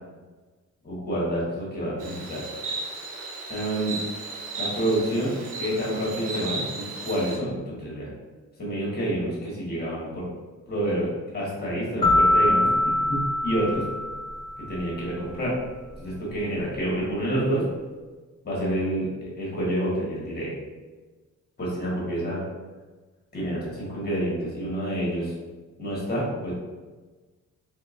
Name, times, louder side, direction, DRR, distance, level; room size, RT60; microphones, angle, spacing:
voice 1, 0.8-2.4 3.5-4.0 4.6-8.1 8.6-10.2 10.7-11.1 11.3-13.8 14.6-15.6 16.0-17.7 18.4-20.5 21.6-22.4 23.3-25.3 25.8-26.5, right 1 dB, 30° left, -5 dB, 1.5 m, -28 dB
Insect, 2.0-7.4, right 3 dB, 85° right, 1.0 m, -35 dB
sound 1, 12.0-14.8, left 1 dB, 15° left, 0.7 m, -23 dB
3.6 x 3.4 x 2.5 m, 1.3 s
cardioid pair, 125°, 31 cm